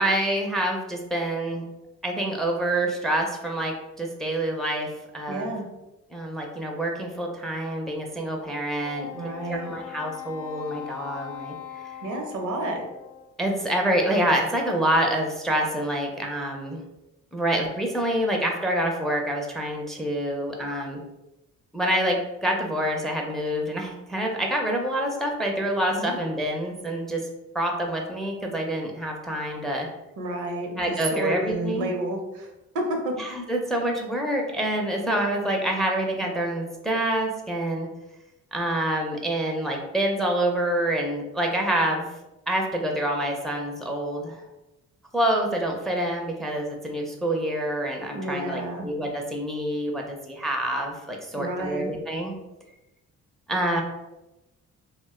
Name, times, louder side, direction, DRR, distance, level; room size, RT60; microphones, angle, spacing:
voice 1, 0.0-1.6 2.0-5.5 6.1-11.5 11.8-11.9 13.4-16.8 17.3-21.0 21.7-27.2 27.5-29.9 30.8-31.9 33.2-37.9 38.5-42.1 42.5-44.4 45.1-52.3 53.5-53.8, right 1 dB, ahead, 1 dB, 0.4 m, -27 dB
voice 2, 5.3-5.7 9.1-9.7 12.0-12.8 25.9-26.2 30.2-32.5 32.7-33.1 48.1-48.9 51.3-51.9, right 1 dB, 75° right, 2 dB, 0.7 m, -30 dB
Wind instrument woodwind instrument, 8.8-13.4, left 10 dB, 85° left, 0.5 m, -40 dB
2.5 x 2.1 x 3.5 m, 0.98 s
cardioid pair, 90°, 30 cm